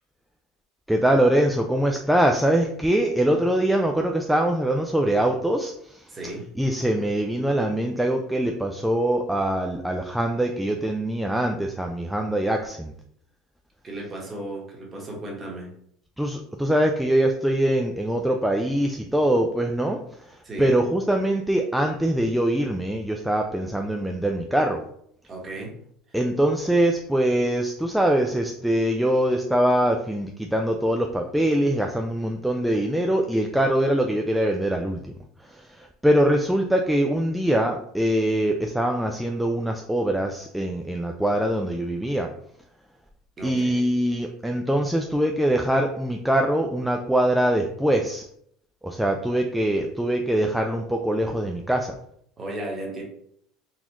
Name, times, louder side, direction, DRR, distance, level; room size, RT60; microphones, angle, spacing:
voice 1, 0.9-6.2 6.6-12.9 16.2-24.8 26.1-35.1 35.4-42.3 43.4-48.3 48.8-51.9, right 1 dB, 5° right, 2 dB, 0.3 m, -23 dB
voice 2, 6.1-6.4 13.8-15.7 20.4-20.7 25.2-25.7 43.4-43.8 52.4-53.0, right 1 dB, 25° right, -1 dB, 1.2 m, -35 dB
4.0 x 2.4 x 2.9 m, 0.69 s
supercardioid pair, 110°, 0 cm